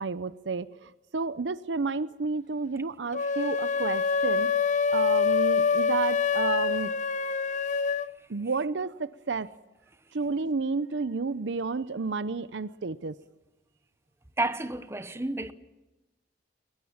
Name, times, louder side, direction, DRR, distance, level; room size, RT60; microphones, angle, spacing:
voice 1, 0.0-6.9 8.3-9.5 10.1-13.1, right 4 dB, 75° right, 0.7 m, -31 dB
sound 1, 3.1-8.1, left 5 dB, 45° left, 0.7 m, -26 dB
voice 2, 14.4-15.5, right 2 dB, 15° right, 0.9 m, -30 dB
22.5 x 21.5 x 7.2 m
head